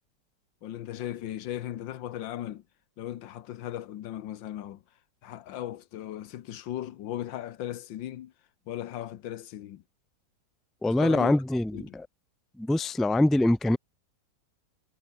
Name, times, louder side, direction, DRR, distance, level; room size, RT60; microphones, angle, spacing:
voice 1, 0.6-2.6 3.0-4.8 5.2-8.3 8.7-9.8 10.9-11.3 11.7-12.0, left 12 dB, 85° left, 1.6 m, -37 dB
voice 2, 10.8-12.1 12.6-13.8, left 1 dB, ahead, 0.6 m, -24 dB
omnidirectional pair, 2.0 m